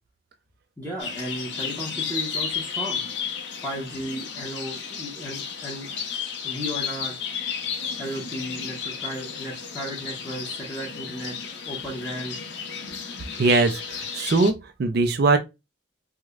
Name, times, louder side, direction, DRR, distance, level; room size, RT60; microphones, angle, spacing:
voice 1, 0.8-3.0 3.6-5.9 6.4-7.2 8.0-11.3 11.7-12.4, equal, 10° left, 0.9 m, -34 dB
sound 1, 1.0-14.5, left 6 dB, 60° left, 0.6 m, -33 dB
voice 2, 13.4-15.4, right 3 dB, 50° right, 0.4 m, -21 dB
4.7 x 2.2 x 2.4 m
head